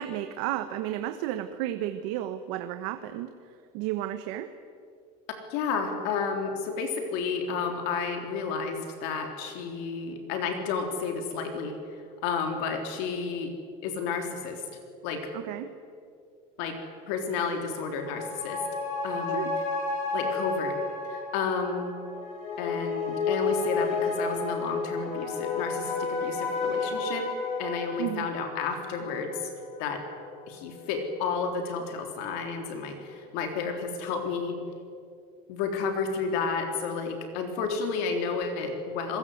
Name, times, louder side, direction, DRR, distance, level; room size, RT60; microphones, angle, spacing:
voice 1, 0.0-3.3 3.7-4.5 15.3-15.7 19.3-19.5 28.0-28.3, right 13 dB, 60° right, 9 dB, 1.3 m, -32 dB
voice 2, 5.5-11.8 12.2-13.5 13.8-14.6 15.0-15.3 16.6-16.8 17.1-18.6 19.0-19.4 20.1-20.8 21.1-22.0 22.6-27.3 27.6-29.5 29.8-30.0 30.5-34.6 35.5-39.2, left 5 dB, 60° left, 4 dB, 3.6 m, -31 dB
sound 1, 17.8-30.7 31.0-31.1, left 4 dB, 40° left, 7.8 m, -32 dB
26.5 x 21.5 x 8.0 m, 2.3 s
cardioid pair, 165°, 19 cm